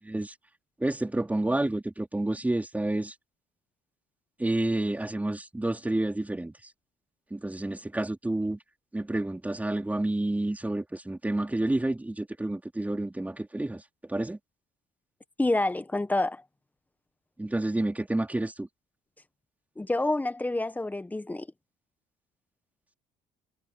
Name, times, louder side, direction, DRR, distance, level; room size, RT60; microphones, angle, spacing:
voice 1, 0.8-3.1 4.4-6.5 7.3-8.6 8.9-13.8 14.1-14.4 17.4-18.7, right 1 dB, 10° right, 4.2 m, -29 dB
voice 2, 15.4-16.4 19.8-21.5, left 2 dB, 10° left, 1.2 m, -28 dB
cardioid pair, 110°, 17 cm